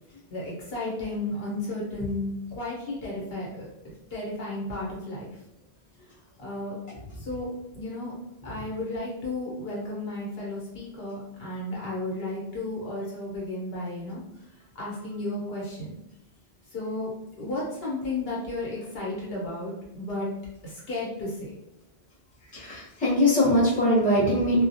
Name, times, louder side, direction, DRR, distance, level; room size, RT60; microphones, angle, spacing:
voice 1, 0.3-3.7 4.1-5.3 6.4-6.8 7.3-8.1 8.4-14.2 14.7-15.9 16.7-17.1 17.4-20.3 20.6-21.5, left 2 dB, 70° left, -5 dB, 1.0 m, -33 dB
voice 2, 22.5-24.6, left 1 dB, 10° left, -7 dB, 0.6 m, -22 dB
2.3 x 2.0 x 2.6 m, 0.87 s
omnidirectional pair, 1.1 m